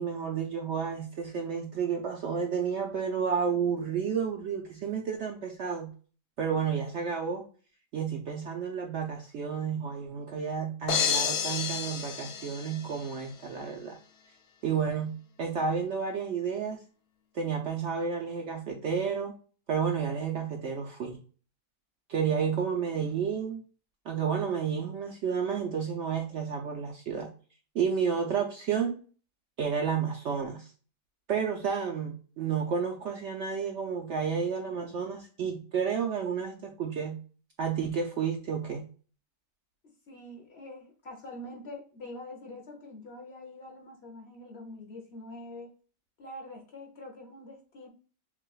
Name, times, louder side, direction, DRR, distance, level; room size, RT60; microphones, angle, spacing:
voice 1, 0.0-5.9 6.4-7.4 7.9-14.0 14.6-16.8 17.3-19.3 19.7-21.2 22.1-23.6 24.1-27.3 27.7-29.0 29.6-30.7 31.3-37.2 37.6-38.9, right 6 dB, 60° right, 2 dB, 0.7 m, -31 dB
sound 1, 10.9-13.1, left 7 dB, 80° left, 0.5 m, -30 dB
voice 2, 40.1-45.7 46.2-47.9, left 1 dB, 50° left, 0 dB, 1.1 m, -45 dB
5.9 x 2.5 x 2.3 m, 0.39 s
omnidirectional pair, 1.6 m